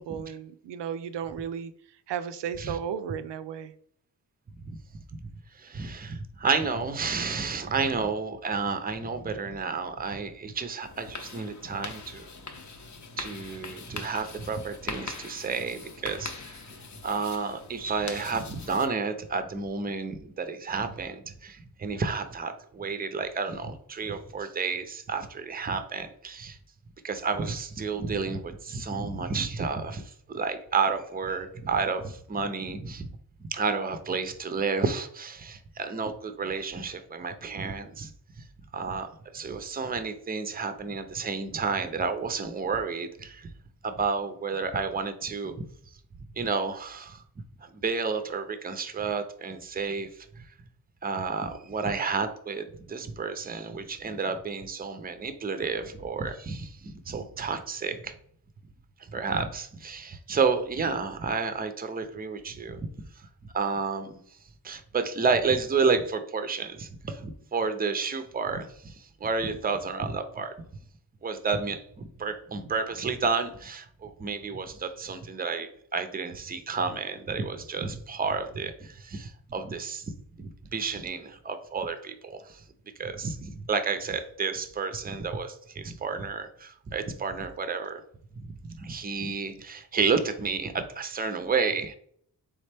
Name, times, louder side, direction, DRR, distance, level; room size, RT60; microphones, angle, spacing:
voice 1, 0.0-1.7 2.1-3.7, right 8 dB, 85° right, 11 dB, 0.5 m, -34 dB
voice 2, 5.5-12.3 13.2-16.6 17.0-26.6 27.0-33.1 33.4-38.4 38.7-43.5 43.8-45.5 46.4-47.2 47.6-50.3 51.0-58.1 59.0-62.9 63.2-64.2 64.6-70.5 71.2-82.6 83.0-88.0 88.3-91.9, right 4 dB, 20° right, 9 dB, 0.5 m, -31 dB
sound 1, 10.8-18.9, left 4 dB, 45° left, 0.7 m, -42 dB
4.2 x 3.6 x 3.3 m, 0.63 s
wide cardioid pair, 100°, 41 cm